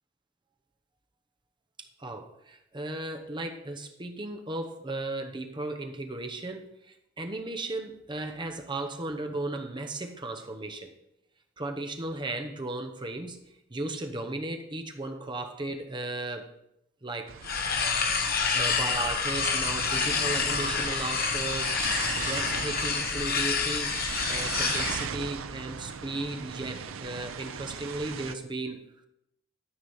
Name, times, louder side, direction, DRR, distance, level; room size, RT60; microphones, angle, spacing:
voice 1, 1.8-6.7 7.2-10.9 11.6-13.4 13.7-16.5 17.0-17.3 18.5-21.8 22.2-23.9 24.3-28.8, right 2 dB, 20° right, 4 dB, 0.9 m, -35 dB
sound 1, 17.3-28.4, right 7 dB, 65° right, 0.5 m, -38 dB
sound 2, 17.4-25.1, left 5 dB, 45° left, 1.0 m, -28 dB
12.5 x 4.9 x 5.6 m, 0.83 s
head